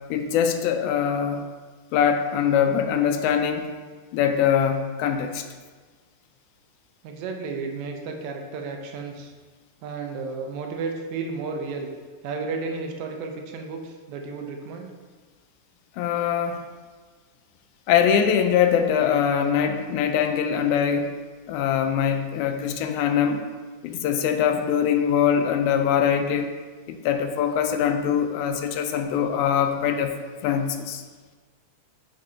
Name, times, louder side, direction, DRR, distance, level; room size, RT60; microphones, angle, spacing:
voice 1, 0.1-1.5 1.9-3.7 4.1-5.4 16.0-16.6 17.9-21.1 21.5-23.4 23.8-26.5 26.9-30.1 30.4-31.0, left 8 dB, 90° left, 6 dB, 2.0 m, -22 dB
voice 2, 7.0-9.3 9.8-11.9 12.2-14.9, right 4 dB, 80° right, 3 dB, 2.0 m, -33 dB
6.8 x 3.7 x 4.2 m, 1.4 s
omnidirectional pair, 3.4 m